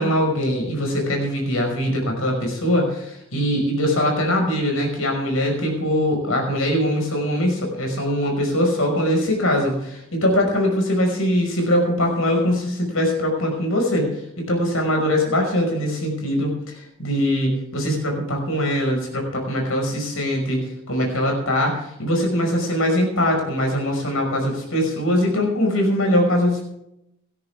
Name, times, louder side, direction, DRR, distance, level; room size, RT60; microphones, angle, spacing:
voice 1, 0.0-14.1 14.4-20.6 20.9-26.6, equal, 70° left, 2 dB, 5.6 m, -22 dB
18.0 x 13.5 x 3.6 m, 0.81 s
head